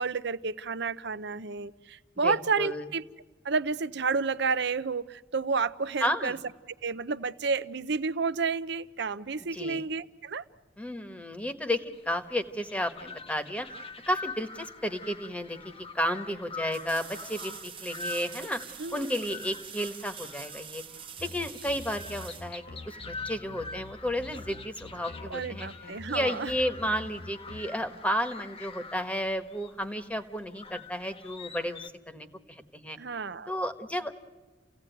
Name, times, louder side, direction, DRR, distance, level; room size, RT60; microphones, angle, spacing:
voice 1, 0.0-3.0 3.4-6.4 6.8-10.4 18.8-19.1 25.3-26.5 33.0-33.5, right 4 dB, 65° right, 15 dB, 0.7 m, -30 dB
voice 2, 2.2-2.9 6.0-6.4 9.5-9.8 10.8-20.8 21.2-25.7 26.1-33.0 33.5-34.2, equal, 10° left, 9 dB, 1.3 m, -32 dB
sound 1, 11.9-31.9, left 3 dB, 30° left, 1.0 m, -45 dB
sound 2, 16.7-23.3 26.1-26.2, right 8 dB, 30° right, 0.8 m, -45 dB
sound 3, 21.2-27.6, left 2 dB, 60° left, 2.1 m, -46 dB
30.0 x 17.0 x 9.2 m, 1.3 s
head